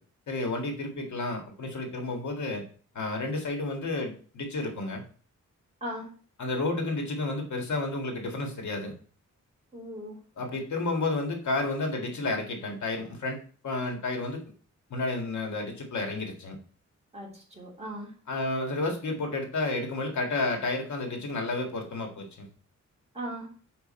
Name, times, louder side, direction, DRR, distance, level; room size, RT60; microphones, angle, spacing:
voice 1, 0.3-2.6 2.9-5.0 6.4-8.9 10.4-14.4 14.9-16.6 18.3-22.5, left 2 dB, 65° left, 2 dB, 1.9 m, -31 dB
voice 2, 9.7-10.2 17.1-18.1 23.1-23.5, equal, 20° right, -3 dB, 3.0 m, -38 dB
7.1 x 4.9 x 4.3 m, 0.42 s
wide cardioid pair, 165°, 31 cm